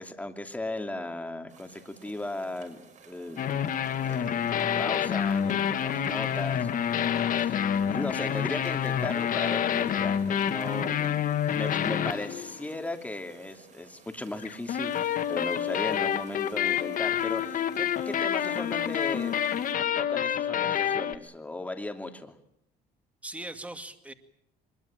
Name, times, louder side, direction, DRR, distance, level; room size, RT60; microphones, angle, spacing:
voice 1, 0.0-3.4 4.0-4.4 4.8-19.4 20.0-22.4, left 2 dB, 10° left, 6 dB, 2.8 m, -37 dB
sound 1, 1.5-19.7, right 5 dB, 45° right, 6.4 m, -55 dB
sound 2, 3.4-12.9 14.4-21.2, left 9 dB, 55° left, 1.5 m, -28 dB
voice 2, 11.5-11.8 23.2-24.1, right 1 dB, 10° right, 8 dB, 2.3 m, -41 dB
23.5 x 22.0 x 8.9 m, 0.73 s
cardioid pair, 110°, 17 cm